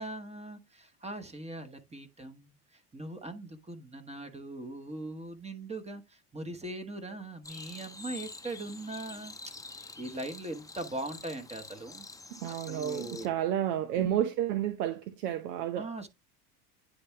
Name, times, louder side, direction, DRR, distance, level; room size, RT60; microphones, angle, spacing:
voice 1, 0.0-9.5 10.0-12.0 12.5-13.3 14.0-14.2 15.8-16.1, right 2 dB, 15° right, 1.1 m, -40 dB
sound 1, 7.4-13.3, left 3 dB, 5° left, 0.7 m, -47 dB
voice 2, 12.3-15.9, right 11 dB, 80° right, 0.9 m, -31 dB
9.7 x 3.5 x 3.3 m
hypercardioid pair, 95°, 47 cm